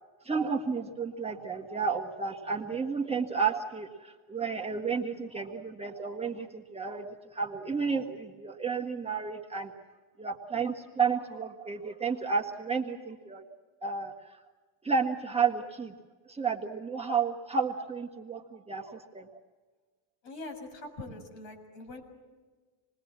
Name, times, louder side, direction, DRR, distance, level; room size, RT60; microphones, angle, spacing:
voice 1, 0.2-9.7 10.2-13.4 13.8-14.4 14.8-15.9 16.3-19.3, right 5 dB, 10° right, 0 dB, 1.5 m, -32 dB
voice 2, 20.2-22.0, left 2 dB, 65° left, 6 dB, 6.6 m, -43 dB
27.5 x 20.5 x 7.4 m, 1.4 s
cardioid pair, 145°, 49 cm